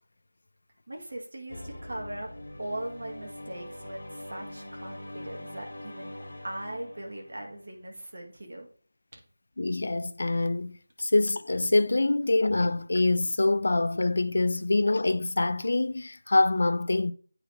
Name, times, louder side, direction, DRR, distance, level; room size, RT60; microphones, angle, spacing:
voice 1, 0.9-2.3 2.6-6.2 6.4-8.7 9.1-9.2, right 1 dB, 60° right, 2.2 m, -39 dB
sound 1, 1.5-7.9, left 1 dB, 80° left, 1.6 m, -43 dB
voice 2, 9.6-17.1, left 2 dB, 60° left, 0.5 m, -25 dB
8.6 x 4.9 x 3.0 m
figure-of-eight pair, 170°, 0 cm